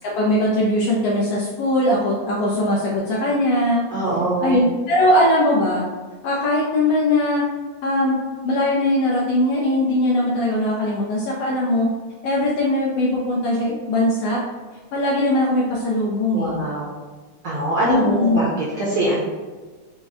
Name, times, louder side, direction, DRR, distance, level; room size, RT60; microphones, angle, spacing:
voice 1, 0.0-3.8 4.4-5.8 6.2-7.4 7.8-8.2 8.4-11.9 12.2-14.4 14.9-16.6 17.9-18.4, left 1 dB, 75° left, -4 dB, 1.5 m, -20 dB
voice 2, 3.9-4.5 16.3-16.9 17.4-19.2, right 1 dB, 70° right, -7 dB, 1.3 m, -22 dB
5.1 x 2.2 x 3.5 m, 1.4 s
omnidirectional pair, 3.3 m